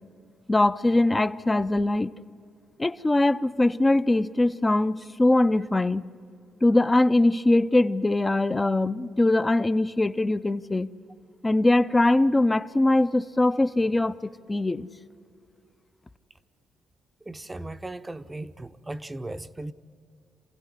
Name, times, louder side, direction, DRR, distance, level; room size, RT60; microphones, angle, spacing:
voice 1, 0.5-2.1 2.8-6.0 6.6-10.9 11.4-14.9, left 2 dB, 15° left, 0.6 m, -22 dB
voice 2, 17.2-19.7, right 2 dB, 15° right, 0.8 m, -37 dB
27.5 x 16.0 x 9.8 m
cardioid pair, 90°, 0 cm